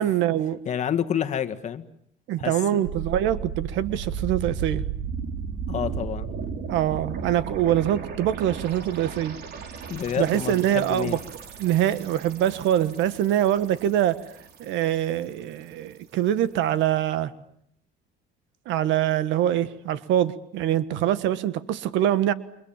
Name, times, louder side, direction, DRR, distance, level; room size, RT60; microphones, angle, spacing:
voice 1, 0.0-0.6 2.3-4.8 6.7-9.4 10.2-11.2 11.6-14.2 14.6-17.3 18.6-22.3, right 11 dB, 80° right, 13 dB, 1.6 m, -24 dB
voice 2, 0.7-1.8 2.4-2.8 5.7-6.3 9.9-11.2, left 9 dB, 35° left, 9 dB, 1.9 m, -28 dB
sound 1, 2.8-15.4 15.7-15.8, right 6 dB, 55° right, 3.9 m, -35 dB
29.5 x 25.5 x 7.4 m, 0.69 s
cardioid pair, 150°, 19 cm